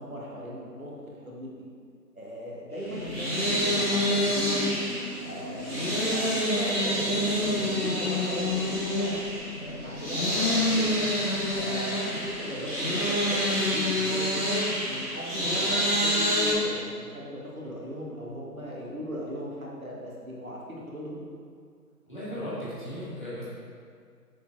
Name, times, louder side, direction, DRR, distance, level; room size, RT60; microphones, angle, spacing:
voice 1, 0.0-1.6 2.1-4.7 5.1-9.3 9.5-11.0 11.6-14.4 14.8-21.2, equal, 55° right, -4 dB, 1.5 m, -38 dB
sound 1, 2.8-16.5, left 1 dB, 10° left, 1.8 m, -27 dB
voice 2, 22.1-23.5, equal, 30° left, -11 dB, 1.8 m, -36 dB
7.0 x 4.2 x 4.6 m, 2.1 s
figure-of-eight pair, 165°, 50 cm